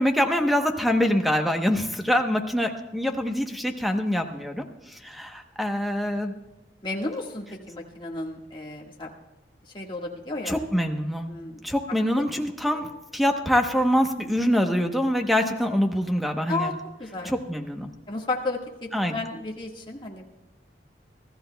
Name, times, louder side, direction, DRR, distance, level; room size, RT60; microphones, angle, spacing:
voice 1, 0.0-6.3 10.5-11.3 11.6-16.7 17.2-17.9 18.9-19.1, equal, ahead, 4 dB, 0.9 m, -25 dB
voice 2, 6.8-9.1 9.7-10.6 11.3-11.6 12.1-12.2 12.6-12.8 16.5-16.7 17.0-17.3 18.1-20.2, left 2 dB, 25° left, -1 dB, 1.6 m, -33 dB
24.5 x 13.5 x 2.3 m, 1.0 s
head